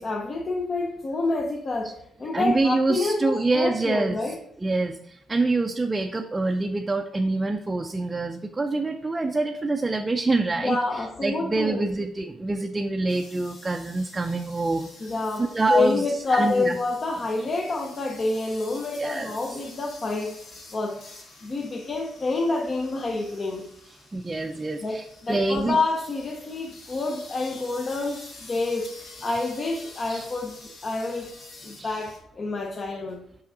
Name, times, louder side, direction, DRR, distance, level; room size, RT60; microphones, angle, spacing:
voice 1, 0.0-4.4 10.6-11.8 15.0-21.0 21.4-23.7 24.8-31.3 31.6-33.2, left 3 dB, 40° left, 0.8 m, -28 dB
voice 2, 2.3-4.2 4.6-14.9 15.4-16.0 16.3-16.8 19.0-19.6 24.1-25.8 30.1-30.3 31.8-31.9, right 2 dB, 20° right, 0.4 m, -26 dB
sound 1, 13.1-32.2, left 3 dB, 75° left, 1.9 m, -48 dB
5.7 x 5.6 x 3.7 m
cardioid pair, 90°, 0 cm